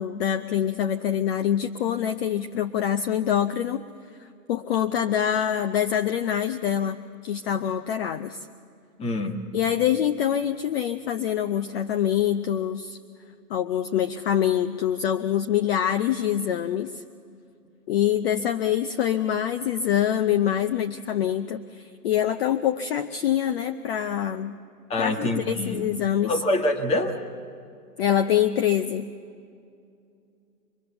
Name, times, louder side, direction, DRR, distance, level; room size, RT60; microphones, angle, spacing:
voice 1, 0.0-3.8 4.2-8.5 9.5-13.0 13.5-17.0 17.9-24.6 25.0-26.3 28.0-29.1, left 10 dB, 40° left, 8 dB, 0.6 m, -25 dB
voice 2, 9.0-9.4 24.9-25.8 26.3-27.2, left 1 dB, 15° left, 6 dB, 1.3 m, -25 dB
25.0 x 21.0 x 6.9 m, 2.4 s
hypercardioid pair, 135°, 47 cm